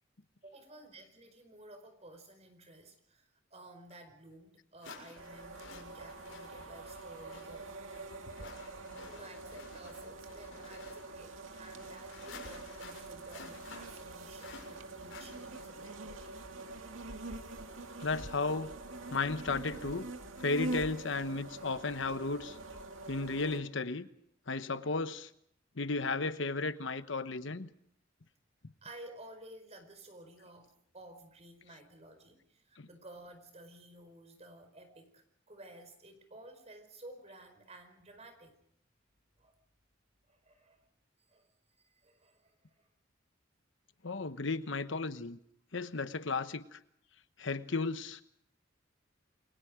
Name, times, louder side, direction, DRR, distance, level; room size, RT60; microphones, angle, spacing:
voice 1, 0.4-8.0 9.1-16.4 28.8-38.6 39.4-39.5 40.3-40.8 41.3-41.5 41.8-42.9, right 1 dB, 35° right, 7 dB, 4.9 m, -54 dB
sound 1, 3.9-4.0 4.8-15.9, left 4 dB, 85° left, 6.8 m, -53 dB
sound 2, 5.2-23.6, right 2 dB, 85° right, 2.2 m, -45 dB
voice 2, 18.0-18.7 19.1-20.1 20.4-22.6 23.1-24.1 24.5-25.3 25.8-27.7 32.8-32.9 44.0-45.4 45.7-46.8 47.4-48.2, left 3 dB, 65° left, 12 dB, 1.1 m, -34 dB
29.0 x 22.5 x 5.1 m, 0.69 s
head